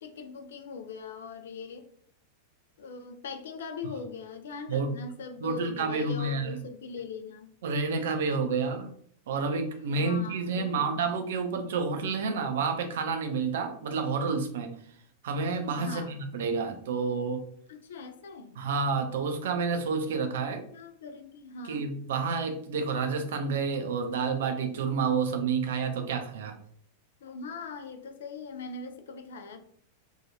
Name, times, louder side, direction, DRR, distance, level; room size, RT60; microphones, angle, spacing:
voice 1, 0.0-1.9 2.8-7.5 9.9-10.9 15.8-16.1 17.7-18.6 20.4-21.8 27.2-29.6, left 4 dB, 60° left, 7 dB, 0.4 m, -41 dB
voice 2, 5.4-6.6 7.6-8.9 9.3-14.7 15.2-17.4 18.6-20.6 21.6-26.6, right 4 dB, 60° right, 6 dB, 0.4 m, -29 dB
2.8 x 2.3 x 2.7 m, 0.62 s
figure-of-eight pair, 90°, 0 cm